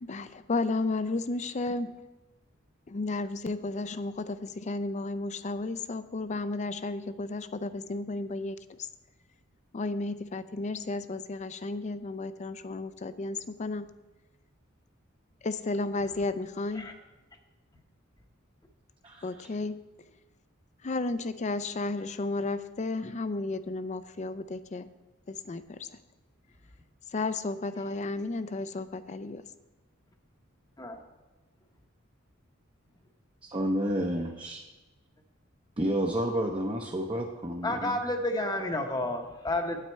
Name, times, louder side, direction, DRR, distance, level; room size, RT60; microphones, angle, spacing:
voice 1, 0.0-1.9 2.9-8.6 9.7-13.8 15.4-16.9 19.2-19.8 20.8-24.9 25.3-25.6 27.1-29.4, left 2 dB, 35° left, 13 dB, 0.4 m, -33 dB
voice 2, 19.0-19.5 33.4-34.6 35.8-38.0, equal, 25° right, 1 dB, 0.7 m, -30 dB
voice 3, 37.6-39.8, left 1 dB, 20° left, 4 dB, 0.9 m, -30 dB
9.2 x 8.7 x 4.5 m, 1.2 s
head